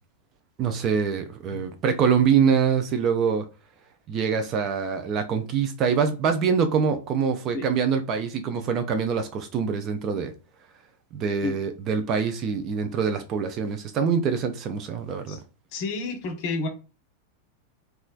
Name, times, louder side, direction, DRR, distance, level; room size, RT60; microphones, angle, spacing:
voice 1, 0.6-3.4 4.1-10.3 11.1-15.4, right 6 dB, 35° right, 0.4 m, -24 dB
voice 2, 15.7-16.7, left 3 dB, 45° left, 0.7 m, -30 dB
3.0 x 2.3 x 2.4 m
figure-of-eight pair, 90°, 0 cm